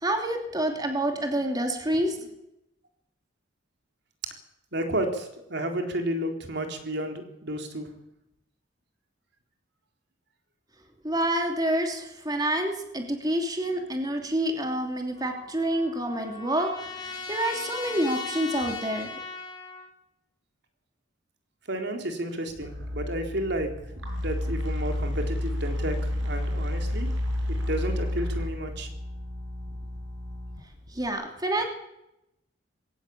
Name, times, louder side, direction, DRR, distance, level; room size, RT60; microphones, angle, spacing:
voice 1, 0.0-2.2 11.0-19.1 30.9-31.7, right 1 dB, 20° right, 3 dB, 2.9 m, -28 dB
voice 2, 4.7-7.9 21.7-23.7 24.1-26.0 26.2-27.1 27.5-28.9, right 1 dB, 60° right, 4 dB, 3.9 m, -31 dB
Trumpet, 15.2-19.9, left 4 dB, 25° left, 5.9 m, -38 dB
sound 1, 22.5-31.1, left 1 dB, 80° right, 7.2 m, -31 dB
22.0 x 17.5 x 8.7 m, 0.85 s
head